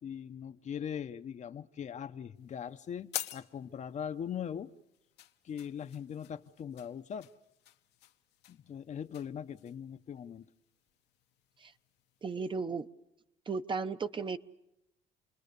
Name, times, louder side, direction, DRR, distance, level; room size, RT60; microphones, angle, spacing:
voice 1, 0.0-4.7 5.4-7.3 8.5-10.5, left 8 dB, 45° left, 10 dB, 0.8 m, -40 dB
sound 1, 2.3-12.6, left 13 dB, 85° left, 1.3 m, -49 dB
voice 2, 12.2-12.9 13.5-14.4, right 4 dB, 30° right, 10 dB, 0.8 m, -35 dB
28.5 x 21.0 x 6.8 m, 0.84 s
cardioid pair, 110°, 17 cm